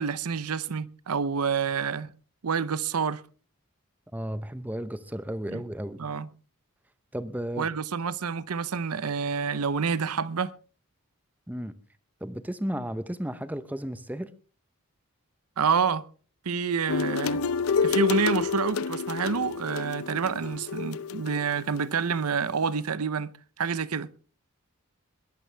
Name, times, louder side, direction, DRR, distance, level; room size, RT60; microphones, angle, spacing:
voice 1, 0.0-2.1 2.4-3.2 5.5-5.6 6.0-6.3 7.6-10.5 15.6-16.0 16.4-17.4 17.8-24.1, right 6 dB, 90° right, 0.7 m, -28 dB
voice 2, 4.1-6.0 7.1-7.7 11.5-11.7 12.2-14.3, equal, 5° right, 0.7 m, -33 dB
sound 1, 16.9-21.9, left 5 dB, 75° left, 0.6 m, -29 dB
21.5 x 13.0 x 3.4 m
head